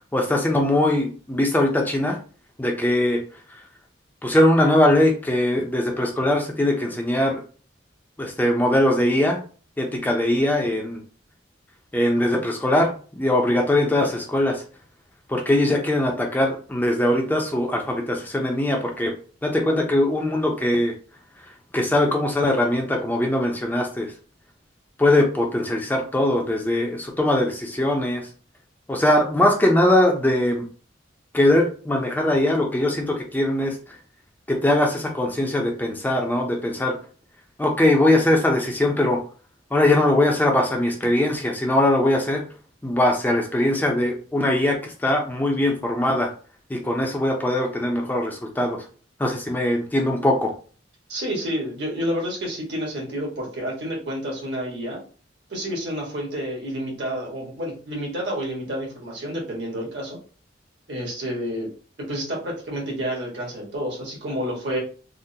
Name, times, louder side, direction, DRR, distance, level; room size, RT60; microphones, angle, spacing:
voice 1, 0.1-2.2 2.6-3.2 4.2-7.4 8.2-9.4 9.8-11.0 11.9-14.6 15.3-19.1 19.4-20.9 21.4-24.1 25.0-28.3 28.9-30.6 31.3-34.0 34.5-37.0 37.6-39.2 39.7-42.4 42.8-46.3 46.7-48.8 49.2-50.5, left 1 dB, 10° left, 1 dB, 0.4 m, -21 dB
voice 2, 51.1-55.0 55.5-60.2 60.9-61.7 62.0-64.8, equal, 65° right, -2 dB, 1.3 m, -29 dB
3.7 x 2.1 x 2.7 m, 0.38 s
head